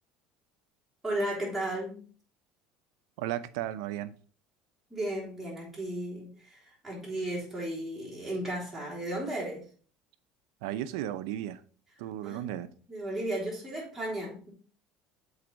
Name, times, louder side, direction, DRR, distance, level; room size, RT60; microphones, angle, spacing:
voice 1, 1.0-2.0 4.9-9.7 12.2-14.5, right 1 dB, 5° right, -5 dB, 3.6 m, -35 dB
voice 2, 3.2-4.1 10.6-11.6 12.0-12.7, right 12 dB, 90° right, 13 dB, 0.6 m, -34 dB
7.7 x 4.1 x 4.6 m, 0.42 s
cardioid pair, 135°, 3 cm